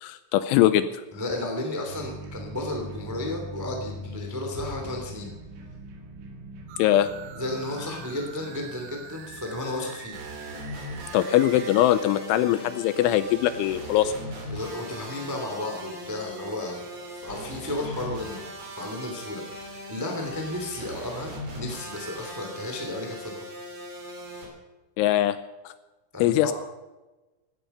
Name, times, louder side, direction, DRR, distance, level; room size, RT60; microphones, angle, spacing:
voice 1, 0.0-0.9 6.8-7.1 11.1-14.1 25.0-25.4 25.7-25.8 26.2-26.5, left 12 dB, 80° left, 13 dB, 2.9 m, -21 dB
voice 2, 1.1-5.3 7.3-10.2 14.5-16.9 17.2-23.5 26.1-26.5, left 2 dB, 10° right, 2 dB, 0.9 m, -33 dB
sound 1, 1.9-10.2, equal, 65° right, 4.2 m, -41 dB
sound 2, 6.7-11.9, right 9 dB, 85° right, 3.8 m, -45 dB
sound 3, 10.1-24.5, equal, 35° right, 3.6 m, -39 dB
17.5 x 12.5 x 5.6 m, 1.1 s
omnidirectional pair, 5.8 m